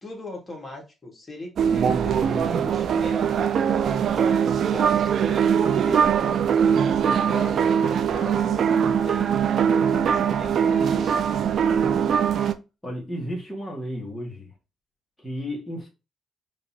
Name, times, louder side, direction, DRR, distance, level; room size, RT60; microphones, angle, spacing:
voice 1, 0.0-3.5 3.8-9.3 9.7-11.2, left 2 dB, 25° left, 1.8 m, -39 dB
sound 1, 1.6-12.5, right 7 dB, 65° right, 0.4 m, -21 dB
voice 2, 12.8-14.5 15.2-15.9, equal, 5° left, 1.6 m, -33 dB
5.2 x 2.8 x 2.8 m
cardioid pair, 90°, 0 cm